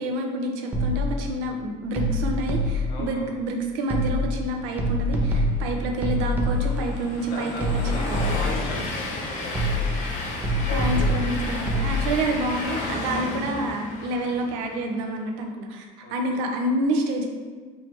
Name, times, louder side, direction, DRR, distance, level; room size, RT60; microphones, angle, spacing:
voice 1, 0.0-8.2 10.6-17.3, right 1 dB, 90° right, 2 dB, 0.6 m, -28 dB
sound 1, 0.7-1.2 2.0-3.0 3.9-4.4 4.8-6.9 7.6-8.7 9.5-10.1 10.4-11.9, equal, 10° right, 0.3 m, -25 dB
voice 2, 2.9-3.3 6.6-7.0 7.3-10.0 10.7-11.2 14.3-14.5 16.0-16.4, left 2 dB, 80° left, -1 dB, 1.0 m, -38 dB
Train, 5.5-14.9, left 2 dB, 45° left, 0.6 m, -33 dB
4.5 x 2.8 x 3.2 m, 1.5 s
cardioid pair, 180°, 17 cm